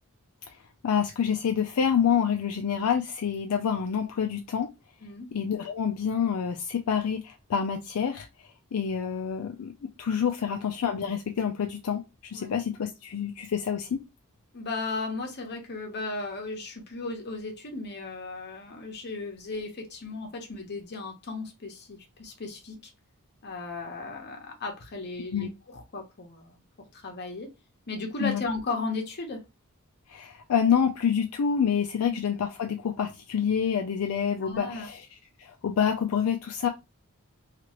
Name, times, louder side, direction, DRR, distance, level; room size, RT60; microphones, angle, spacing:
voice 1, 0.8-4.7 5.3-8.3 8.7-14.0 25.3-25.5 28.2-28.4 30.1-35.1 35.4-36.7, left 7 dB, 75° left, 0.4 m, -27 dB
voice 2, 14.5-22.9 23.4-26.6 26.9-27.5 27.9-29.4 32.0-32.2 34.4-34.9, left 3 dB, 50° left, 0.9 m, -36 dB
2.9 x 2.4 x 2.9 m
head